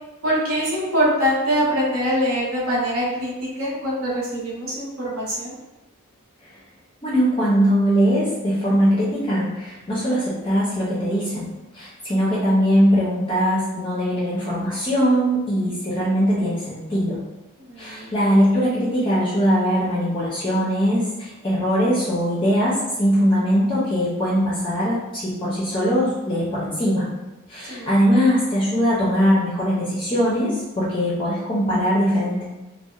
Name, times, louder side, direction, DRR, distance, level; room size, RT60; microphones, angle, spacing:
voice 1, 0.2-3.3 3.6-5.5 17.7-18.1 27.7-27.9, equal, 75° right, -6 dB, 0.9 m, -23 dB
voice 2, 7.0-11.5 11.7-17.2 17.8-27.1 27.5-32.4, equal, 20° left, -7 dB, 0.4 m, -21 dB
2.7 x 2.0 x 2.3 m, 1.0 s
head